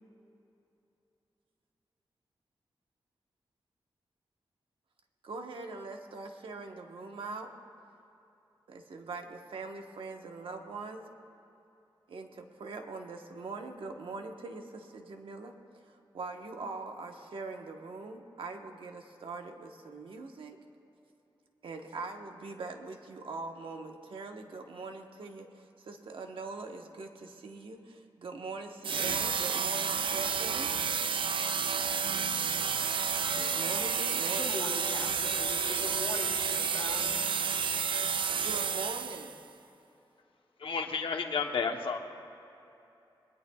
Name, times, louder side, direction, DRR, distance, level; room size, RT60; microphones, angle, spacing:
voice 1, 5.2-7.5 8.7-11.0 12.1-20.6 21.6-30.8 33.3-34.6 38.3-39.4, right 3 dB, 90° right, 4 dB, 1.2 m, -42 dB
sound 1, 28.8-39.4, right 6 dB, 75° right, 0.5 m, -30 dB
voice 2, 34.4-37.1, left 2 dB, 40° left, 0 dB, 2.2 m, -40 dB
voice 3, 40.6-42.0, left 5 dB, 90° left, 4 dB, 1.0 m, -31 dB
26.0 x 21.0 x 2.4 m, 2.8 s
wide cardioid pair, 115°, 9 cm